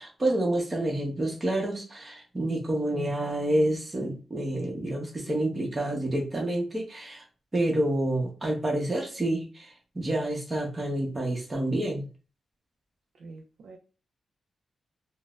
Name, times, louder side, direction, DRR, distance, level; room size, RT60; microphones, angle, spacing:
voice 1, 0.0-7.2 7.5-12.1, right 1 dB, 25° right, -1 dB, 1.0 m, -28 dB
voice 2, 2.9-3.3 13.2-13.8, right 3 dB, 75° right, 1 dB, 0.5 m, -43 dB
3.8 x 2.1 x 2.5 m, 0.35 s
wide cardioid pair, 125°, 0 cm